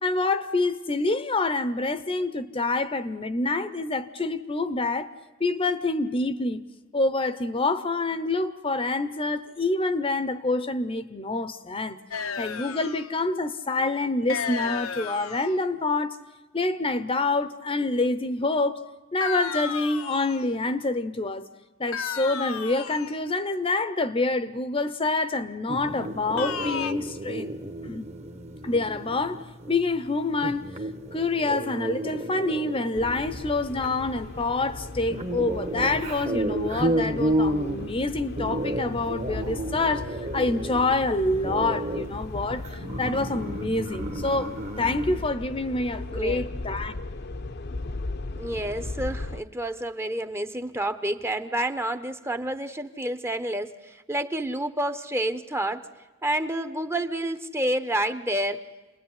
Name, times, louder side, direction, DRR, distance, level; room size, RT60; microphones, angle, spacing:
voice 1, 0.0-5.1 5.4-6.6 6.9-12.0 12.4-16.2 16.5-21.5 21.8-27.6 27.8-28.1 28.6-29.4 29.7-30.7 31.1-40.1 40.3-47.0, left 2 dB, 25° left, 0.8 m, -27 dB
sound 1, 12.1-13.1 14.3-15.6 19.2-20.5 21.9-23.2 26.4-26.9, left 6 dB, 90° left, 1.1 m, -33 dB
sound 2, 25.7-45.3, right 1 dB, 30° right, 1.2 m, -32 dB
sound 3, 33.0-49.4, left 2 dB, 50° left, 0.9 m, -37 dB
voice 2, 46.1-46.4 48.4-55.9 56.2-58.6, right 1 dB, 10° right, 0.9 m, -29 dB
28.5 x 20.5 x 9.7 m
head